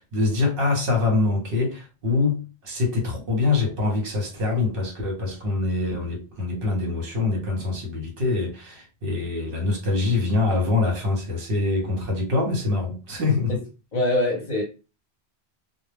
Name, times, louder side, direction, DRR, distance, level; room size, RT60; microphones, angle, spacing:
voice 1, 0.1-13.6, left 3 dB, 60° right, 1.1 m, -24 dB
voice 2, 13.9-14.6, left 1 dB, 45° left, 0.8 m, -23 dB
2.2 x 2.1 x 3.3 m
omnidirectional pair, 1.1 m